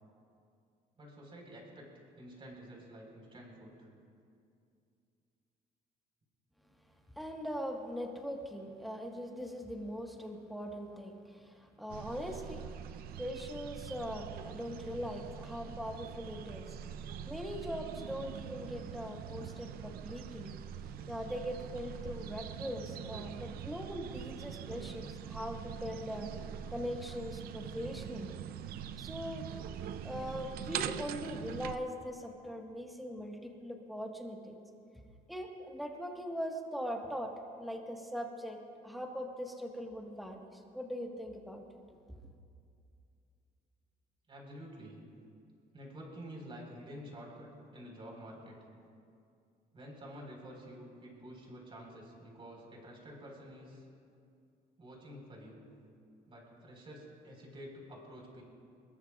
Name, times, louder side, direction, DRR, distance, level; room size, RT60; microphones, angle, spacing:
voice 1, 1.0-3.7 44.3-45.0 45.7-48.6 49.7-53.8 54.8-55.6 56.3-58.4, equal, 35° right, -1 dB, 4.9 m, -49 dB
voice 2, 7.2-12.7 13.2-16.6 17.0-20.6 21.1-26.3 26.7-28.4 29.0-29.5 30.0-34.6 35.3-38.6 38.8-41.6, equal, ahead, 1 dB, 1.7 m, -41 dB
sound 1, 11.9-31.8, right 9 dB, 70° right, 0.6 m, -43 dB
22.5 x 21.0 x 2.5 m, 2.4 s
cardioid pair, 115°, 16 cm